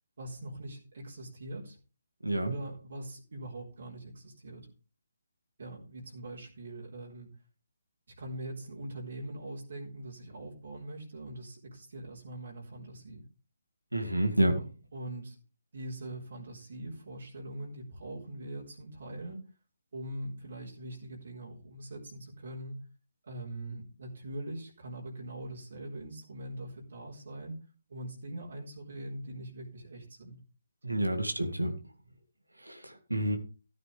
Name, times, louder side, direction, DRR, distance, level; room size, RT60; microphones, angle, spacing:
voice 1, 0.2-1.8 2.4-4.7 5.6-7.3 8.2-13.2 14.5-14.6 14.9-15.4 15.7-19.4 19.9-22.8 23.3-27.6 27.9-30.4 30.9-31.1, right 1 dB, 60° right, -3 dB, 4.0 m, -42 dB
voice 2, 2.2-2.5 13.9-14.5 30.8-31.7 32.6-33.4, right 1 dB, 90° right, 6 dB, 2.1 m, -29 dB
14.5 x 9.7 x 3.4 m, 0.34 s
figure-of-eight pair, 145°, 0 cm